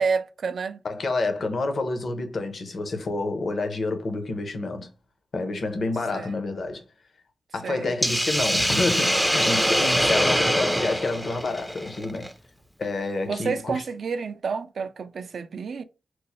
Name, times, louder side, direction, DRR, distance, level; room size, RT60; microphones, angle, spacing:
voice 1, 0.0-0.8 6.1-6.4 7.6-7.9 13.3-15.8, right 5 dB, 70° right, 0.3 m, -29 dB
voice 2, 0.8-4.9 5.3-6.8 7.5-12.3 12.8-13.7, left 2 dB, 60° left, 0.7 m, -28 dB
Hiss, 8.0-12.3, equal, ahead, 0.4 m, -23 dB
3.0 x 2.0 x 4.1 m
wide cardioid pair, 90°, 0 cm